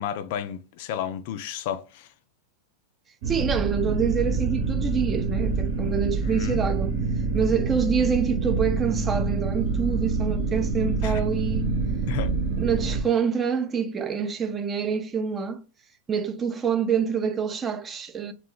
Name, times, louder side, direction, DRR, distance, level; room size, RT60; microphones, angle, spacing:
voice 1, 0.0-2.1 6.2-6.6 11.0-11.2 11.5-11.6 12.1-12.3, left 9 dB, 60° left, 0.3 m, -32 dB
sound 1, 3.2-13.0, right 4 dB, 60° right, 1.0 m, -26 dB
voice 2, 3.3-6.9 7.3-11.7 12.6-15.6 16.1-18.3, right 6 dB, 25° right, 0.4 m, -26 dB
2.2 x 2.2 x 3.7 m
hypercardioid pair, 105°, 0 cm